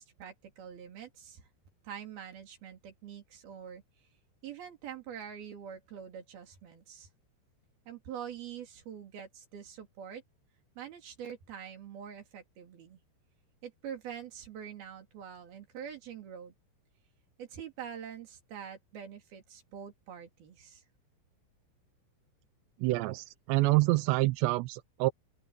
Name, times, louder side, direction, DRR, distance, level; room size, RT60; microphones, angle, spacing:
voice 1, 0.0-1.5 1.8-3.8 4.4-7.1 7.9-10.2 10.8-13.0 13.6-16.5 17.4-20.8, right 8 dB, 55° right, 4.8 m, -45 dB
voice 2, 22.8-25.1, right 20 dB, 80° right, 2.6 m, -27 dB
open air
omnidirectional pair, 5.7 m